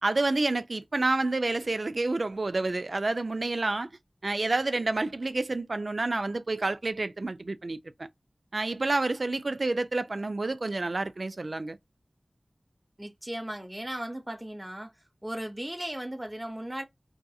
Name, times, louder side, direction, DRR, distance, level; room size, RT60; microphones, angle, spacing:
voice 1, 0.0-3.9 4.2-8.1 8.5-11.8, right 2 dB, 65° right, 0.4 m, -29 dB
voice 2, 13.0-14.9 15.2-16.8, right 1 dB, 15° right, 0.7 m, -36 dB
2.7 x 2.5 x 2.3 m
wide cardioid pair, 55°, 0 cm